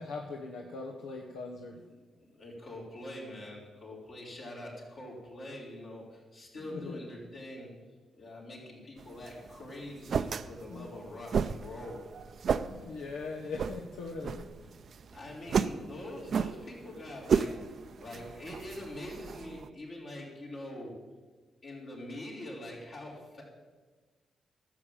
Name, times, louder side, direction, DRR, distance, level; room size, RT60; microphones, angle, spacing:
voice 1, 0.0-1.8 6.5-7.0 10.7-10.9 12.6-14.5, left 3 dB, 85° left, 0 dB, 1.0 m, -41 dB
voice 2, 2.1-7.7 8.1-12.0 15.1-21.0 21.6-23.4, left 1 dB, 60° left, -3 dB, 4.7 m, -44 dB
sound 1, 9.0-19.7, right 6 dB, 60° right, 0.5 m, -34 dB
12.0 x 7.3 x 8.8 m, 1.3 s
supercardioid pair, 55°, 0 cm